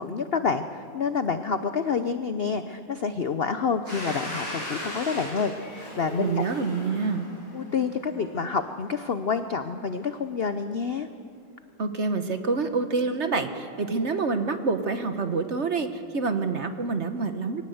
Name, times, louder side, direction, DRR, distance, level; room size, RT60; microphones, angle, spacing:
voice 1, 0.0-6.4 7.5-11.1, left 5 dB, 80° left, 10 dB, 0.5 m, -28 dB
Domestic sounds home sounds, 3.8-8.5, equal, 65° right, 8.5 m, -37 dB
voice 2, 6.2-7.2 11.8-17.6, right 4 dB, 45° right, 8 dB, 1.1 m, -27 dB
22.0 x 18.0 x 7.9 m, 2.4 s
omnidirectional pair, 2.1 m